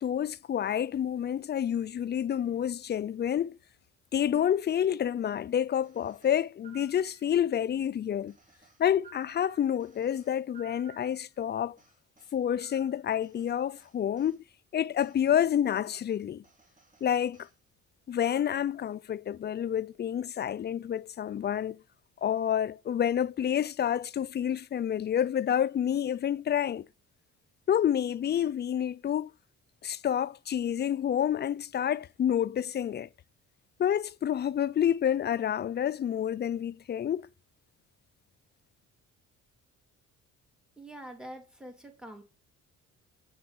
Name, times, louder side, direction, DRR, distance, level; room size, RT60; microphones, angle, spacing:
voice 1, 0.0-3.5 4.1-8.3 8.8-11.8 12.3-14.4 14.7-16.4 17.0-17.5 18.1-21.8 22.2-26.9 27.7-29.3 29.8-33.1 33.8-37.3, left 9 dB, 35° left, 0.4 m, -28 dB
sound 1, 5.8-7.6 8.3-11.4 11.8-14.4 15.0-15.2 15.8-16.0 16.4-17.5 18.1-18.7, right 6 dB, 25° right, 2.8 m, -57 dB
voice 2, 40.8-42.2, right 1 dB, 5° right, 3.2 m, -45 dB
7.7 x 7.0 x 6.1 m
cardioid pair, 90°, 30 cm